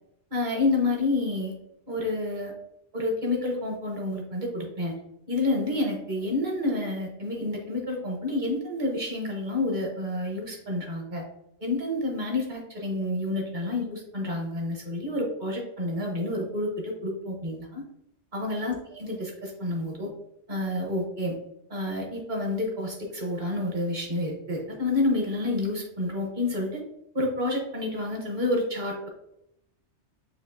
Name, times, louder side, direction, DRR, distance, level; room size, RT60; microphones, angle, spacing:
voice 1, 0.3-1.5 1.9-2.5 2.9-5.0 5.3-11.2 11.6-17.8 18.3-20.1 20.5-21.4 21.7-26.8 27.1-29.1, left 2 dB, 40° right, -1 dB, 1.2 m, -29 dB
6.6 x 2.7 x 2.7 m, 0.82 s
omnidirectional pair, 1.2 m